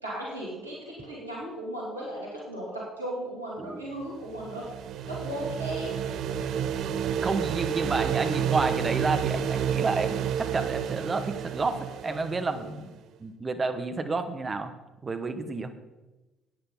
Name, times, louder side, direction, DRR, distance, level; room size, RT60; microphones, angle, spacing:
voice 1, 0.0-4.7 5.0-6.1, right 1 dB, 85° right, -5 dB, 2.5 m, -36 dB
sound 1, 4.0-12.8, right 9 dB, 55° right, 0.6 m, -30 dB
voice 2, 7.2-12.9 13.2-14.7 15.0-15.7, right 3 dB, 30° right, 8 dB, 1.3 m, -30 dB
11.0 x 9.4 x 5.6 m, 1.1 s
figure-of-eight pair, 50°, 0 cm